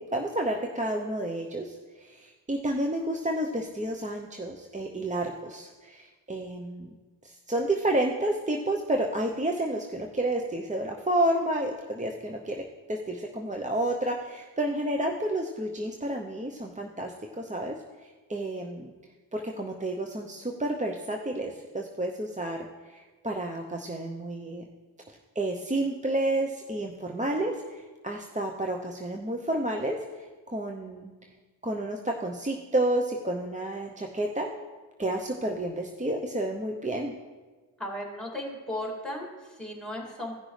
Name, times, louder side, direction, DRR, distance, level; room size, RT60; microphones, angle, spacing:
voice 1, 0.0-6.9 7.2-18.9 19.3-24.6 25.1-31.1 31.6-34.5 35.0-37.1, right 1 dB, 20° right, 1 dB, 0.7 m, -30 dB
voice 2, 37.8-40.4, left 1 dB, ahead, -1 dB, 2.5 m, -36 dB
16.0 x 6.0 x 3.3 m, 1.3 s
cardioid pair, 50°, 41 cm